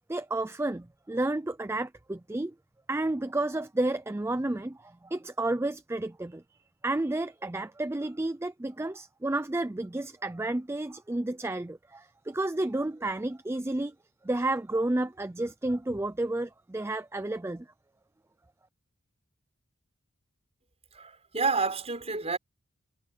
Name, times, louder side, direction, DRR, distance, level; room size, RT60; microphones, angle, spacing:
voice 1, 0.1-2.5 2.9-6.4 6.8-13.9 14.2-17.7, right 2 dB, 10° right, 0.4 m, -31 dB
voice 2, 20.9-22.4, right 4 dB, 30° right, 5.6 m, -29 dB
head